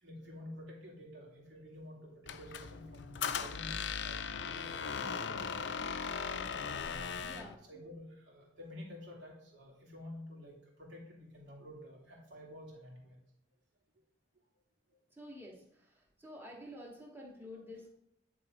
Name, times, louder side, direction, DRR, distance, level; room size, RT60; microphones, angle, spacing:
voice 1, 0.0-5.8 6.4-13.2 14.9-15.0, left 1 dB, 70° right, -3 dB, 2.8 m, -50 dB
Squeak, 2.3-7.5, left 6 dB, 65° left, 0.5 m, -38 dB
voice 2, 7.2-7.6 15.2-15.9 16.2-17.9, left 1 dB, 10° right, -2 dB, 1.6 m, -49 dB
10.5 x 3.9 x 4.9 m, 0.78 s
head